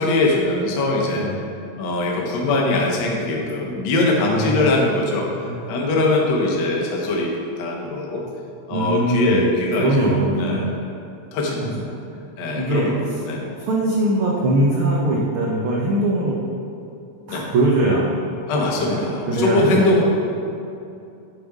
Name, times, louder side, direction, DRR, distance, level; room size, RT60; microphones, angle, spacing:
voice 1, 0.0-1.3 1.8-5.3 5.7-7.3 7.6-8.2 8.7-10.1 10.4-10.8 11.3-11.9 12.4-13.4 17.3-17.5 18.5-20.0, left 2 dB, 65° left, -1 dB, 1.1 m, -21 dB
voice 2, 4.2-4.6 5.5-5.6 8.7-9.5 9.8-10.6 11.6-11.9 12.6-12.9 13.4-16.4 17.3-18.1 18.7-20.0, right 1 dB, 70° right, -4 dB, 1.2 m, -21 dB
9.2 x 5.0 x 3.6 m, 2.6 s
omnidirectional pair, 3.3 m